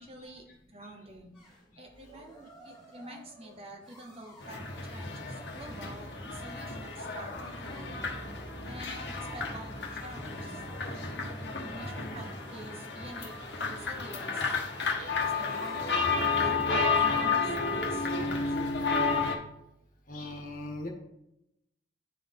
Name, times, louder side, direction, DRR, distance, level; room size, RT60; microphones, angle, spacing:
voice 1, 0.0-1.4 1.8-8.0 8.7-14.5 14.9-18.6, right 1 dB, 30° right, 3 dB, 0.8 m, -48 dB
rubbing fingers on waxed table, 1.3-16.5, equal, 5° left, 1.7 m, -55 dB
sound 1, 4.4-19.3, left 4 dB, 65° left, 1.1 m, -32 dB
voice 2, 20.1-20.9, left 2 dB, 45° left, 0 dB, 1.4 m, -40 dB
9.5 x 3.9 x 3.6 m, 0.84 s
head